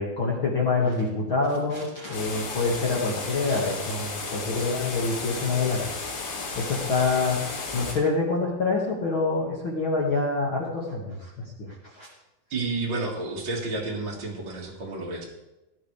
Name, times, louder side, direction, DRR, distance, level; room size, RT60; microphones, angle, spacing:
voice 1, 0.0-7.4 7.7-11.3 11.6-12.1, left 3 dB, 50° left, -4 dB, 1.6 m, -26 dB
sound 1, 2.1-7.9, left 4 dB, 90° left, 5.2 m, -34 dB
voice 2, 12.5-15.2, right 3 dB, 45° right, -4 dB, 1.5 m, -31 dB
19.0 x 11.0 x 3.4 m, 0.98 s
omnidirectional pair, 4.9 m